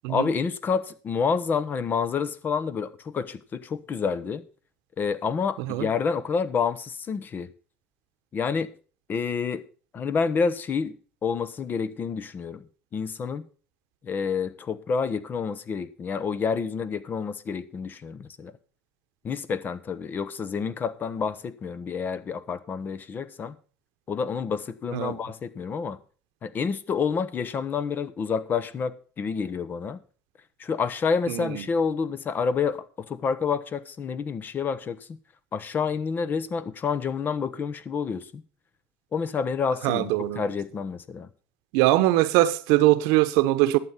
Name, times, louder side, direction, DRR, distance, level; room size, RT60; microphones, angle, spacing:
voice 1, 0.1-4.4 5.0-7.5 8.3-8.7 9.1-9.7 9.9-13.4 14.0-18.5 19.2-23.5 24.1-26.0 26.4-30.0 30.6-35.0 35.5-38.4 39.1-41.3, left 5 dB, 35° left, 1.0 m, -28 dB
voice 2, 31.3-31.6 39.8-40.4 41.7-43.8, right 16 dB, 75° right, 1.0 m, -21 dB
11.5 x 7.6 x 5.7 m
supercardioid pair, 100°, 5 cm